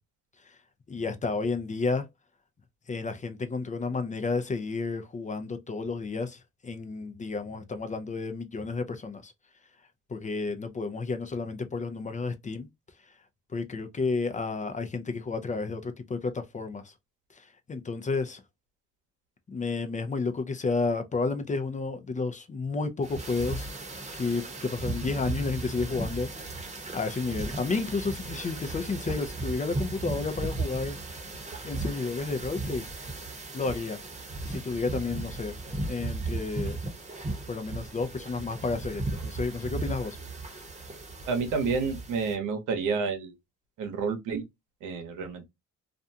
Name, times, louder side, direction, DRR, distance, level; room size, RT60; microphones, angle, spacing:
voice 1, 0.9-2.1 2.9-9.3 10.1-12.7 13.5-16.9 17.4-18.4 19.5-23.7 24.1-26.3 26.9-31.0 31.6-32.8 33.5-34.0 34.5-35.5 35.9-36.8 37.5-40.2, left 4 dB, 25° left, 0.4 m, -31 dB
sound 1, 23.0-42.3, right 2 dB, 20° right, 0.9 m, -36 dB
voice 2, 41.3-43.3 43.8-44.4 44.8-45.4, right 5 dB, 85° right, 0.9 m, -29 dB
2.5 x 2.2 x 2.6 m
cardioid pair, 90°, 30 cm